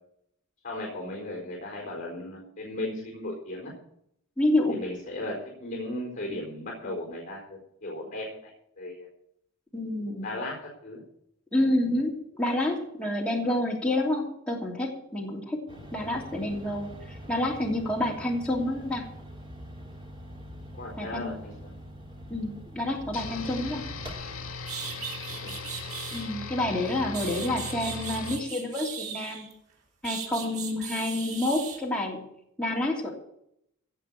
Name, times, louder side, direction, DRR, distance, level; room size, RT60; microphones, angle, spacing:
voice 1, 0.6-3.7 4.7-8.5 8.8-9.1 10.2-11.0 20.7-21.7 25.3-25.6, left 1 dB, 40° left, -2 dB, 4.4 m, -36 dB
voice 2, 4.4-4.8 9.7-10.3 11.5-15.6 15.9-19.0 21.0-21.3 22.3-23.8 26.1-29.5 30.0-32.3 32.6-33.1, left 1 dB, 5° left, -3 dB, 2.9 m, -28 dB
sound 1, 15.7-24.6, equal, 25° right, 3.2 m, -44 dB
sound 2, 23.1-28.4, left 4 dB, 75° left, 1.9 m, -38 dB
sound 3, 24.2-24.3 24.6-26.3 26.9-29.5 30.0-31.8, right 7 dB, 90° right, 3.7 m, -38 dB
17.0 x 5.9 x 8.7 m, 0.73 s
head